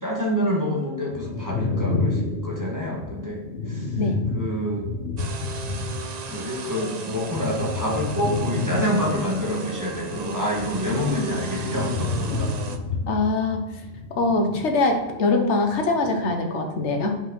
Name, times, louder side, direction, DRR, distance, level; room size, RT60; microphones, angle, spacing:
voice 1, 0.0-3.9 4.3-4.9 6.3-12.5, equal, 15° right, -4 dB, 1.7 m, -27 dB
sound 1, 1.1-6.4 6.7-15.3 15.6-16.3, left 3 dB, 70° left, 1.0 m, -30 dB
sound 2, 5.2-12.8, right 5 dB, 45° right, 0.6 m, -35 dB
voice 2, 13.1-13.6 14.1-17.2, left 3 dB, 85° left, 4 dB, 1.3 m, -23 dB
5.5 x 5.4 x 5.5 m, 1.1 s
omnidirectional pair, 1.1 m